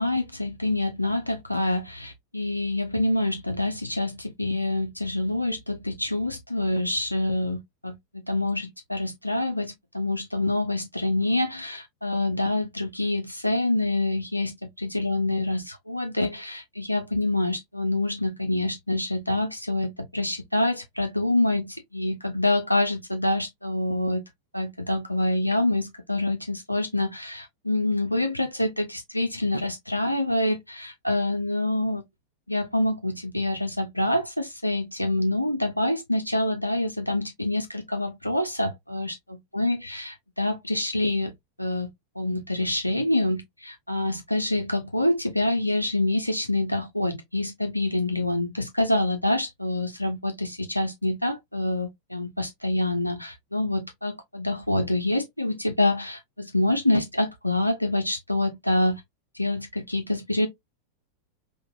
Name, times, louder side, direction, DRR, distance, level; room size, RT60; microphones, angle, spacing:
voice 1, 0.0-8.0 8.2-24.2 24.5-32.0 32.5-40.1 40.4-41.3 41.6-41.9 42.2-59.0 59.3-60.5, left 1 dB, 85° left, 0.4 m, -26 dB
3.9 x 2.5 x 2.3 m
figure-of-eight pair, 90°, 0 cm